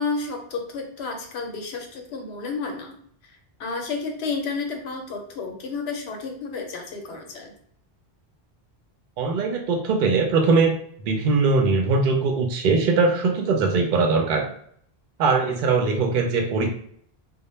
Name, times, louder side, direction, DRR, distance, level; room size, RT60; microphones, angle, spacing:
voice 1, 0.0-2.9 3.6-7.5, left 4 dB, 85° left, 3 dB, 0.9 m, -31 dB
voice 2, 9.2-10.7 11.0-14.4 15.2-16.7, right 4 dB, 60° right, 2 dB, 0.6 m, -21 dB
2.1 x 2.0 x 3.0 m, 0.62 s
omnidirectional pair, 1.0 m